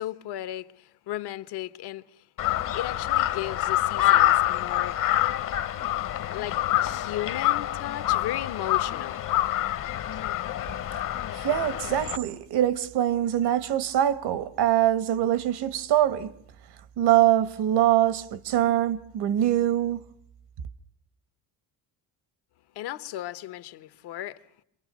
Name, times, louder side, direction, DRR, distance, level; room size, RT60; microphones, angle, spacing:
voice 1, 0.0-2.3 2.7-5.0 6.3-9.3 22.7-24.6, left 13 dB, 75° left, 1.2 m, -35 dB
Crow, 2.4-12.2, left 14 dB, 50° left, 1.0 m, -26 dB
voice 2, 11.3-16.3 17.0-20.0, right 12 dB, 75° right, 1.5 m, -23 dB
28.0 x 23.5 x 6.2 m
cardioid pair, 130°, 40 cm